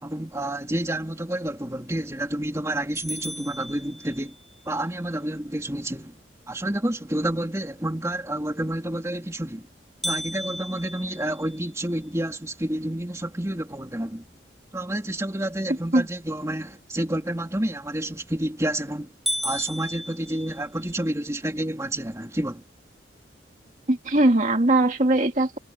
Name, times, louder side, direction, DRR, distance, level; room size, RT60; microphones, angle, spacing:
voice 1, 0.0-4.4 4.7-6.1 6.5-9.7 10.0-14.2 14.7-19.1 19.4-22.6, right 1 dB, 15° right, 2.5 m, -29 dB
sound 1, 2.9-4.5 10.0-12.2 12.7-12.8 13.3-13.4 14.0-14.4 18.0-18.4 18.8-18.9 19.3-21.0, equal, ahead, 4.4 m, -34 dB
voice 2, 23.9-25.6, right 2 dB, 40° right, 2.0 m, -20 dB
head